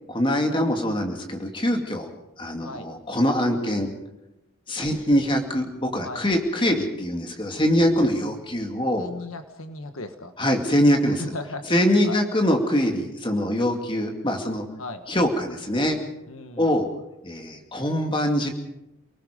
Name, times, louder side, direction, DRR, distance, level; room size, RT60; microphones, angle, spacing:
voice 1, 0.1-2.1 2.4-3.9 4.7-9.1 10.4-11.2 11.7-14.6 15.1-16.0 16.6-16.9 17.2-18.5, equal, 20° left, 3 dB, 2.4 m, -23 dB
voice 2, 6.0-6.3 9.0-10.3 11.3-11.6 12.0-12.2 14.8-15.0 16.3-16.7, left 2 dB, 70° left, 8 dB, 1.5 m, -36 dB
29.0 x 19.0 x 5.2 m, 0.91 s
head